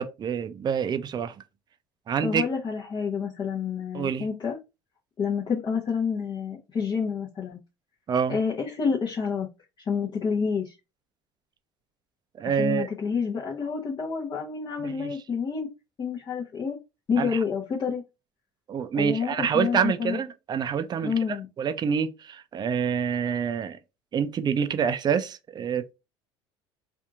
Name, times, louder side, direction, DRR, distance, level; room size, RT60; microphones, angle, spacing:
voice 1, 0.0-1.3 2.1-2.4 3.9-4.3 8.1-8.4 12.4-12.9 14.8-15.1 17.2-17.4 18.7-23.8 24.1-25.9, right 7 dB, 35° right, 0.5 m, -27 dB
voice 2, 2.2-4.6 5.2-7.6 8.3-9.5 9.9-10.7 12.4-15.7 16.0-16.8 17.1-18.0 18.9-20.2 21.0-21.5, left 6 dB, 35° left, 0.8 m, -28 dB
2.7 x 2.5 x 3.6 m
hypercardioid pair, 80°, 13 cm